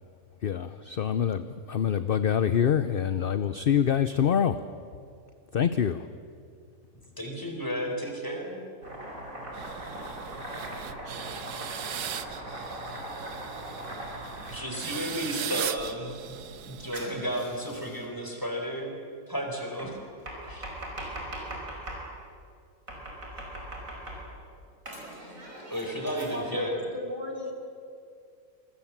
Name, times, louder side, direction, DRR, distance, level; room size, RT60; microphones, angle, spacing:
voice 1, 0.4-4.6 5.5-6.1, left 8 dB, 50° left, 12 dB, 0.7 m, -25 dB
voice 2, 7.2-8.7 14.5-19.0 19.3-20.0 20.4-20.7 25.7-26.7, equal, 10° left, 2 dB, 4.4 m, -33 dB
Domestic sounds home sounds, 8.8-15.2 16.9-18.0 19.8-22.1 22.9-24.4 24.9-26.6, right 1 dB, 60° right, 5.6 m, -40 dB
sound 1, 9.5-17.5, right 9 dB, 85° right, 1.5 m, -39 dB
voice 3, 26.1-27.5, left 1 dB, 30° right, 1 dB, 3.3 m, -35 dB
27.5 x 22.5 x 7.4 m, 2.3 s
omnidirectional pair, 1.6 m